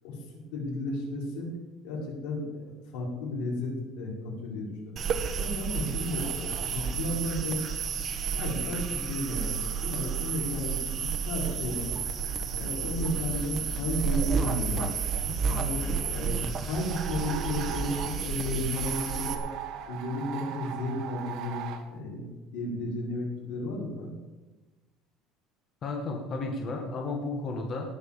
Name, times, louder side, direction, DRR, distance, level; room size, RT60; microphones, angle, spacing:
voice 1, 0.5-1.5 1.8-2.6 2.9-4.9 5.4-7.6 8.3-11.9 12.5-14.8 15.4-19.5 19.9-21.6 21.9-24.1, left 1 dB, 85° left, -3 dB, 6.1 m, -33 dB
sound 1, 5.0-19.3, right 6 dB, 30° right, 1.3 m, -31 dB
sound 2, 16.9-18.2 18.7-21.9, right 10 dB, 55° right, 1.7 m, -39 dB
voice 2, 25.8-27.9, left 3 dB, 35° left, 1 dB, 1.8 m, -33 dB
19.0 x 6.4 x 7.1 m, 1.1 s
cardioid pair, 155°, 0 cm